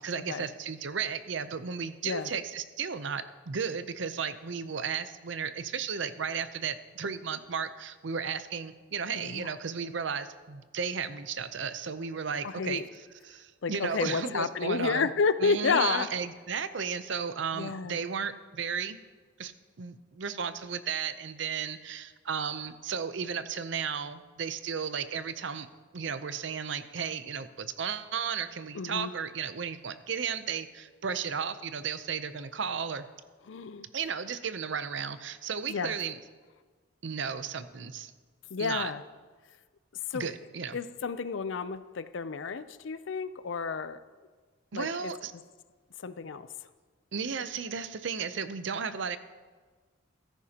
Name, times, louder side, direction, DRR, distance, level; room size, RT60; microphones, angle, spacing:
voice 1, 0.0-12.8 13.2-15.1 15.4-19.0 19.4-19.5 19.8-25.7 25.9-33.1 33.9-36.2 37.0-38.1 38.6-38.9 40.1-40.8 44.7-45.3 47.1-49.2, right 6 dB, 65° right, 12 dB, 0.6 m, -34 dB
voice 2, 9.1-9.5 12.4-12.9 13.6-16.1 17.5-18.0 28.7-29.1 33.5-33.9 35.7-35.9 38.5-39.0 40.1-40.3 40.7-44.0 44.7-45.1 46.0-46.5, left 5 dB, 70° left, 13 dB, 0.5 m, -31 dB
15.0 x 13.5 x 2.9 m, 1.4 s
head